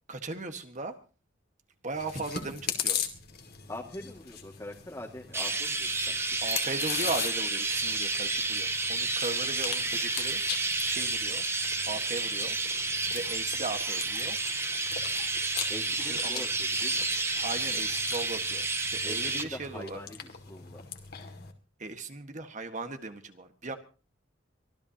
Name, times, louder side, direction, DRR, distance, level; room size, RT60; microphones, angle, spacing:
voice 1, 0.1-1.0 1.8-3.0 6.4-10.4 10.8-11.5 11.9-12.6 13.1-14.4 16.0-16.4 17.4-20.0 21.8-23.8, right 3 dB, 40° right, 7 dB, 1.6 m, -37 dB
Chewing mastication, 2.0-21.5, left 8 dB, 55° left, 2.3 m, -40 dB
voice 2, 3.7-6.2 15.7-17.1 19.0-20.8, left 1 dB, 20° left, -1 dB, 2.1 m, -43 dB
Chirp tweet, 5.3-19.4, right 3 dB, 15° right, 1.1 m, -30 dB
24.0 x 15.5 x 2.9 m, 0.35 s
head